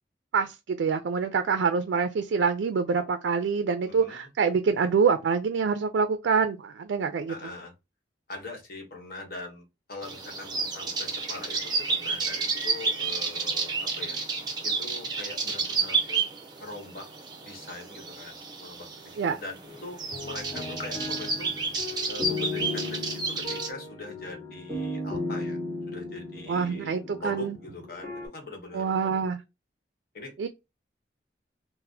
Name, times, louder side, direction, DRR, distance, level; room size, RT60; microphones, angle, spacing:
voice 1, 0.3-7.3 19.2-19.4 26.5-27.6 28.7-29.4 30.4-30.5, right 5 dB, 80° right, 0.3 m, -26 dB
voice 2, 3.9-4.2 7.3-7.7 8.3-14.2 14.6-16.2 16.6-17.1 17.4-21.5 22.1-25.6 25.9-26.9 27.2-29.3 30.1-30.3, left 2 dB, 55° left, 1.0 m, -42 dB
sound 1, 10.0-23.7, right 4 dB, 25° right, 0.6 m, -31 dB
sound 2, 19.6-28.3, left 2 dB, 10° left, 1.5 m, -36 dB
3.9 x 2.0 x 2.7 m
head